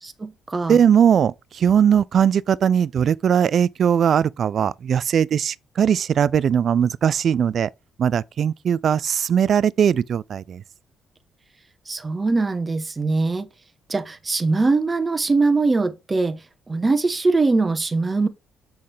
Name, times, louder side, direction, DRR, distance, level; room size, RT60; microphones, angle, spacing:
voice 1, 0.0-0.8 11.9-13.5 13.9-18.3, right 3 dB, 25° right, 1.0 m, -22 dB
voice 2, 0.7-7.7 8.0-10.6, right 8 dB, 60° right, 0.3 m, -19 dB
6.4 x 5.8 x 3.4 m
cardioid pair, 90°, 0 cm